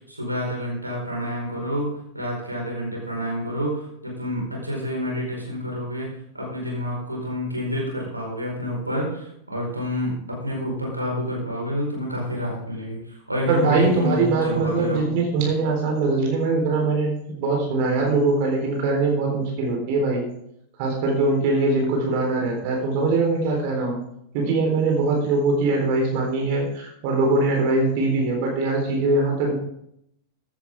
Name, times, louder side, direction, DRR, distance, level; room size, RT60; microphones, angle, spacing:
voice 1, 0.0-6.1 6.3-15.0, equal, 85° right, -2 dB, 4.8 m, -28 dB
voice 2, 13.5-20.2 20.8-24.0 24.3-29.6, right 3 dB, 45° right, 1 dB, 3.9 m, -22 dB
14.5 x 11.0 x 3.7 m, 0.73 s
figure-of-eight pair, 90°, 0 cm